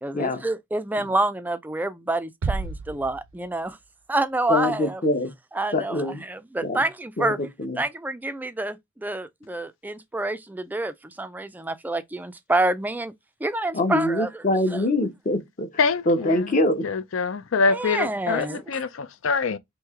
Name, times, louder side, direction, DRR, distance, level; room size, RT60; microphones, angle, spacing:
voice 1, 0.0-3.8 4.1-5.0 5.5-7.4 7.8-13.1 13.4-14.4 14.7-14.8 17.7-18.8, right 2 dB, 10° right, 0.3 m, -28 dB
sound 1, 2.4-4.0, right 4 dB, 85° right, 0.5 m, -32 dB
voice 2, 4.5-5.3 5.7-6.2 6.6-6.8 7.2-7.8 13.7-15.7 16.1-16.9, left 1 dB, 40° left, 0.7 m, -24 dB
voice 3, 15.8-16.6 16.8-19.6, left 4 dB, 80° left, 0.5 m, -25 dB
3.1 x 2.8 x 3.5 m
head